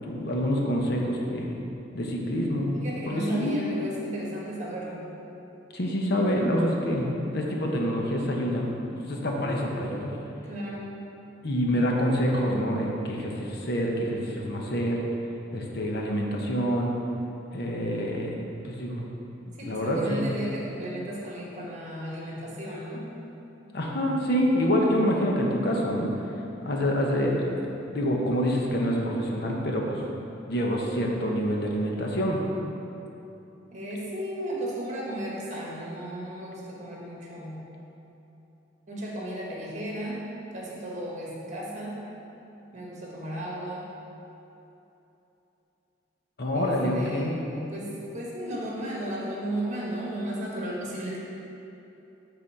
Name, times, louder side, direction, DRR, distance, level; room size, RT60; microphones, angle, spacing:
voice 1, 0.0-1.6 1.9-2.7 3.1-3.6 5.7-8.7 9.1-10.2 11.4-15.0 15.5-16.9 17.5-18.3 18.6-19.1 19.5-20.3 23.7-26.1 26.6-27.6 27.9-30.0 30.5-32.4 46.4-47.4, equal, 55° left, -1 dB, 0.9 m, -26 dB
voice 2, 2.8-5.1 10.4-10.9 19.6-23.1 33.7-37.6 38.9-40.3 40.5-42.0 42.7-43.9 46.5-51.2, right 1 dB, 40° right, -4 dB, 1.5 m, -35 dB
7.0 x 4.1 x 6.5 m, 3.0 s
head